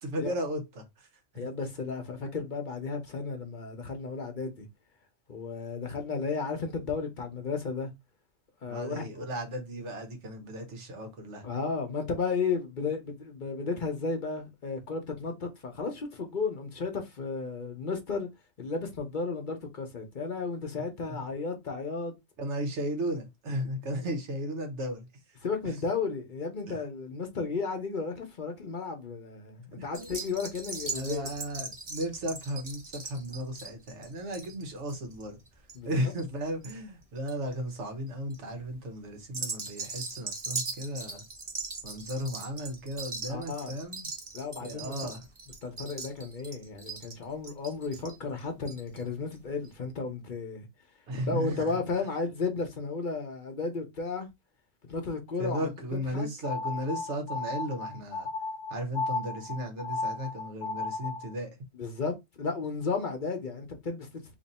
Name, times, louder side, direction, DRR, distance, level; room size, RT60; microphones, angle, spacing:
voice 1, 0.0-1.1 1.3-1.5 2.3-2.5 8.7-11.5 22.4-25.1 26.7-26.8 29.8-30.1 30.9-35.4 35.9-41.2 41.8-44.1 44.6-45.2 51.1-51.8 55.4-58.3 58.7-61.5, equal, 85° right, 1.3 m, -35 dB
voice 2, 1.3-4.7 5.3-7.9 8.6-9.2 11.4-18.3 18.6-22.1 25.4-31.3 35.7-35.9 43.3-43.7 44.3-44.9 45.6-50.7 51.3-54.3 54.9-55.7 56.1-56.3 61.7-64.3, left 4 dB, 50° left, 0.9 m, -33 dB
sound 1, 29.9-36.7 37.0-37.5 38.1-38.4 39.2-49.0 49.3-49.4 49.6-49.7, right 4 dB, 35° right, 0.8 m, -40 dB
sound 2, 56.4-61.3, left 3 dB, 85° left, 0.9 m, -34 dB
2.9 x 2.6 x 4.1 m
omnidirectional pair, 1.2 m